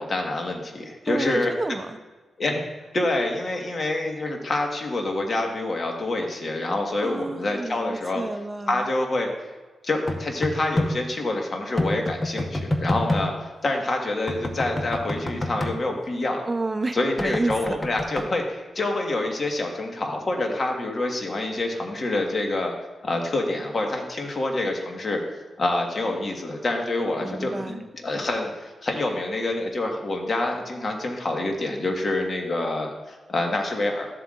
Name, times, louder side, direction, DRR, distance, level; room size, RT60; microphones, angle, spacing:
voice 1, 0.0-1.5 2.4-2.6 2.9-8.2 8.7-9.3 9.8-16.4 16.9-22.7 23.0-34.1, left 2 dB, 45° left, 2 dB, 1.5 m, -27 dB
voice 2, 1.1-2.0 7.0-8.9 16.5-17.8 27.2-27.8, right 2 dB, 20° right, 8 dB, 0.7 m, -30 dB
sound 1, 10.1-10.9 11.8-13.3 14.3-15.7 17.2-18.3, left 1 dB, 25° left, 1.0 m, -27 dB
12.5 x 7.5 x 2.5 m, 1.3 s
cardioid pair, 70°, 0 cm